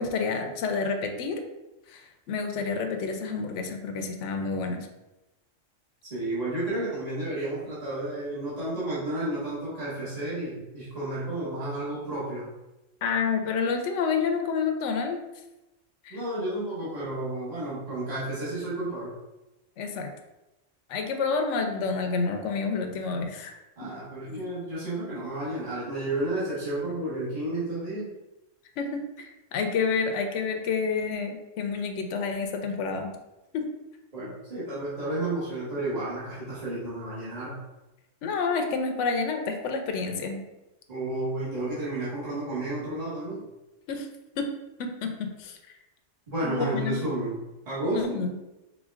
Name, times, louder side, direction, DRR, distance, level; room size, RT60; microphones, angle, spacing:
voice 1, 0.0-1.4 1.9-4.9 13.0-15.2 16.0-16.2 19.8-20.1 20.9-23.9 24.3-24.4 28.8-33.1 33.5-33.7 38.2-40.4 43.9-44.1 44.4-44.5 44.8-45.6 46.4-47.0 47.9-48.3, left 5 dB, 75° left, 5 dB, 0.9 m, -29 dB
voice 2, 6.1-12.5 16.1-19.1 23.8-28.1 34.1-37.6 40.9-43.4 46.3-48.2, right 1 dB, 30° right, -10 dB, 1.6 m, -31 dB
5.0 x 3.6 x 2.4 m, 0.99 s
omnidirectional pair, 1.3 m